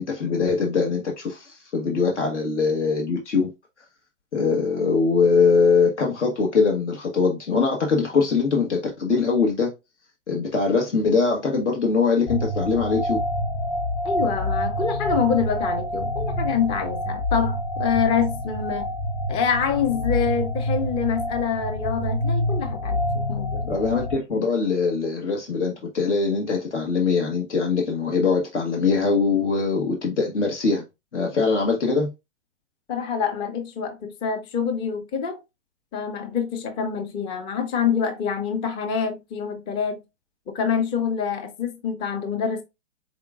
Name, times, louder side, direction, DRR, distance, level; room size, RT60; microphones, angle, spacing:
voice 1, 0.0-3.5 4.3-9.7 10.3-13.2 23.7-30.8 31.1-32.1, left 4 dB, 70° left, 1.3 m, -22 dB
sound 1, 12.3-24.2, left 1 dB, 35° left, 1.5 m, -27 dB
voice 2, 14.0-18.9 19.3-23.7 32.9-35.4 35.9-40.0 40.5-42.6, left 7 dB, 15° left, 0.5 m, -26 dB
4.9 x 3.7 x 2.4 m
hypercardioid pair, 125°, 36 cm